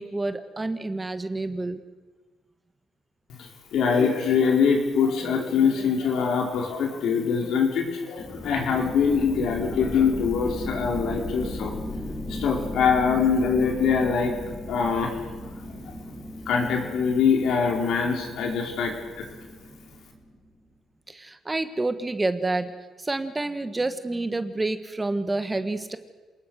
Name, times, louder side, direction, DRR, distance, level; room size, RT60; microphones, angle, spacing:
voice 1, 0.0-1.8 21.1-22.7 23.0-26.0, right 2 dB, 20° right, 10 dB, 1.6 m, -28 dB
voice 2, 3.7-11.7 12.3-14.3 14.7-15.1 15.4-15.5 16.5-19.2, left 6 dB, 75° left, 2 dB, 4.8 m, -23 dB
sound 1, 8.2-20.4, left 1 dB, 25° left, 7.0 m, -36 dB
27.5 x 20.0 x 6.6 m, 1.3 s
cardioid pair, 90°, 0 cm